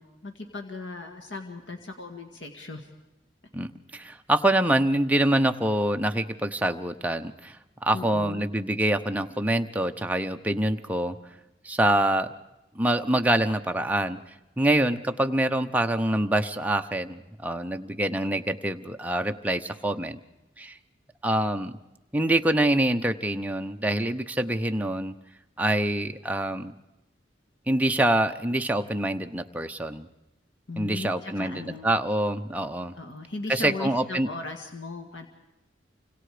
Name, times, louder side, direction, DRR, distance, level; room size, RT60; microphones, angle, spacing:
voice 1, 0.0-2.9 7.9-8.5 30.7-31.9 32.9-35.3, left 3 dB, 85° left, 4 dB, 2.0 m, -37 dB
voice 2, 3.5-7.6 7.8-11.2 11.6-12.3 12.7-14.2 14.6-20.2 20.6-20.8 21.2-21.7 22.1-25.1 25.6-26.7 27.7-30.1 30.8-32.9 33.5-34.3, right 1 dB, 10° right, 6 dB, 0.8 m, -25 dB
29.0 x 25.5 x 5.0 m, 0.96 s
head